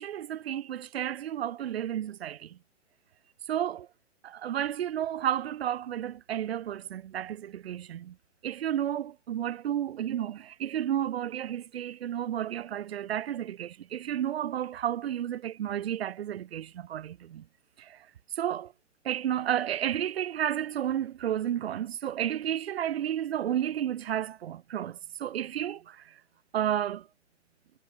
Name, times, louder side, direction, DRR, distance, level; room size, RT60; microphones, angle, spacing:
voice 1, 0.0-2.6 3.5-3.9 4.2-8.2 8.4-17.4 17.8-18.1 18.4-18.7 19.0-26.2 26.5-27.1, right 10 dB, 50° right, 1.7 m, -32 dB
hypercardioid pair, 145°, 38 cm